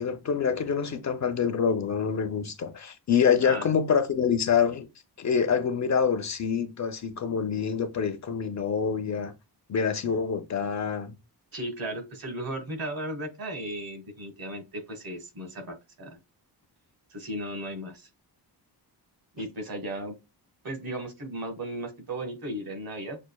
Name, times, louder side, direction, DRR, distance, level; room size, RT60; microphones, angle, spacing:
voice 1, 0.0-4.9 5.2-9.3 9.7-11.2, left 6 dB, 45° left, 0.5 m, -26 dB
voice 2, 11.5-16.2 17.1-18.1 19.3-20.2 20.6-23.2, right 1 dB, 60° right, 1.4 m, -35 dB
6.1 x 2.4 x 2.2 m
wide cardioid pair, 180°, 41 cm